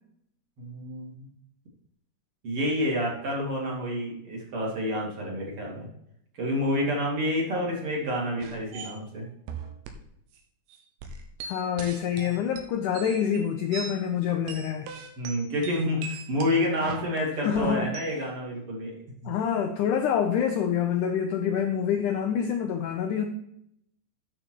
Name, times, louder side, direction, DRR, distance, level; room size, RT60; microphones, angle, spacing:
voice 1, 0.6-1.3 2.4-5.9 6.4-9.3 15.2-18.9, left 1 dB, 40° right, -3 dB, 2.9 m, -29 dB
sound 1, 8.4-9.0 9.5-10.0 10.3-10.4 10.7-14.0 14.3-18.2, right 5 dB, 90° right, 3.1 m, -40 dB
voice 2, 11.5-14.9 17.4-17.9 19.2-23.3, left 8 dB, 90° left, 4 dB, 1.7 m, -26 dB
8.9 x 6.7 x 4.5 m, 0.73 s
omnidirectional pair, 4.5 m